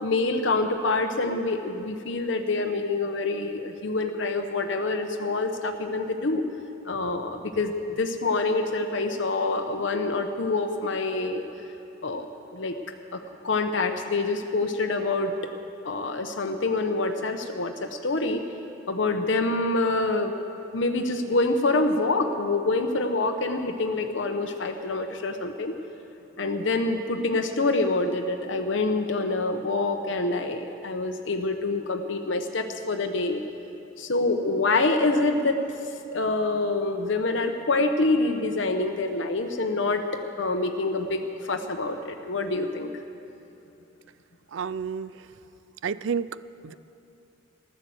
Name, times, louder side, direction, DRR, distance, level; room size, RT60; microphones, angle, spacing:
voice 1, 0.0-6.4 6.8-11.5 12.0-12.3 12.5-12.7 13.1-15.3 15.8-18.4 18.9-20.3 20.7-25.7 26.4-33.4 34.0-35.6 36.1-40.0 40.4-42.9, left 3 dB, 65° left, 5 dB, 0.9 m, -26 dB
voice 2, 44.5-45.3 45.8-46.7, right 6 dB, 70° right, 17 dB, 0.4 m, -31 dB
15.0 x 12.5 x 7.8 m, 2.7 s
head